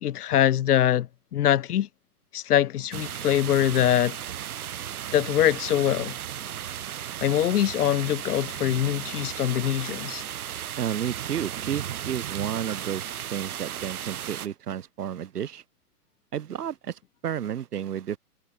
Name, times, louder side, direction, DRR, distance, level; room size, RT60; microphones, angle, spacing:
voice 1, 0.0-1.9 2.3-4.2 5.1-6.1 7.2-10.2, left 11 dB, 75° left, 0.9 m, -23 dB
sound 1, 2.9-14.5, right 10 dB, 70° right, 2.4 m, -35 dB
voice 2, 10.8-13.0 13.3-15.6 16.3-18.2, right 9 dB, 90° right, 1.0 m, -31 dB
hypercardioid pair, 130°, 46 cm